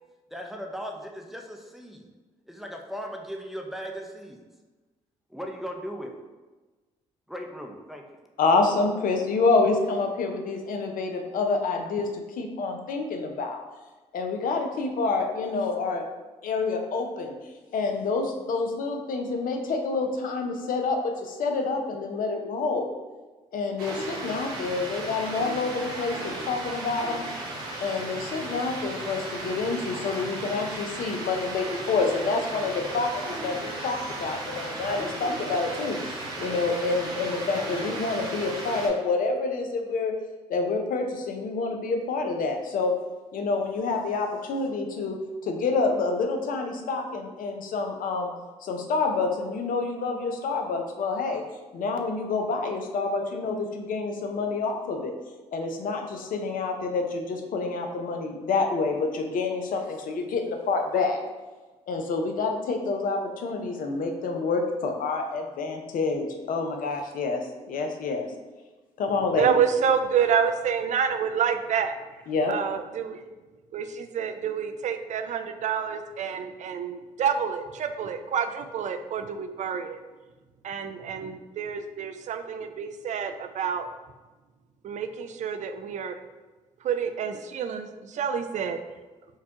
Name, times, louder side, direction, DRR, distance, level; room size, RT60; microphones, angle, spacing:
voice 1, 0.3-2.1 2.5-4.4 5.3-6.1 7.3-8.0, equal, ahead, 2 dB, 0.6 m, -37 dB
voice 2, 8.4-13.6 14.1-16.0 16.4-17.3 17.7-22.9 23.5-27.2 27.8-36.0 36.4-40.1 40.5-42.9 43.3-45.2 45.4-48.3 48.6-51.4 51.7-55.1 55.5-61.2 61.9-67.4 67.7-68.3 69.0-69.5 72.3-72.5, left 3 dB, 60° left, 4 dB, 0.6 m, -27 dB
City Rain, 23.8-38.9, right 2 dB, 75° right, 0.9 m, -35 dB
voice 3, 69.4-72.0 72.5-73.2 73.7-80.0 80.6-83.9 84.8-86.2 86.8-88.8, right 7 dB, 50° right, 8 dB, 0.4 m, -28 dB
4.6 x 2.2 x 2.8 m, 1.2 s
hypercardioid pair, 50°, 16 cm